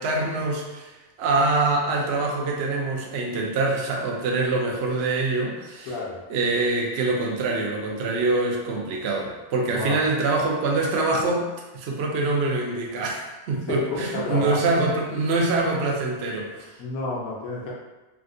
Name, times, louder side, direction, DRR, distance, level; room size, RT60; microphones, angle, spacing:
voice 1, 0.0-5.9 6.3-11.5 11.7-16.8, right 3 dB, 60° right, -1 dB, 0.7 m, -25 dB
voice 2, 5.8-6.2 9.7-10.0 13.7-14.6 16.8-17.7, left 2 dB, 70° left, -4 dB, 1.1 m, -30 dB
3.5 x 2.4 x 2.5 m, 1.1 s
omnidirectional pair, 1.5 m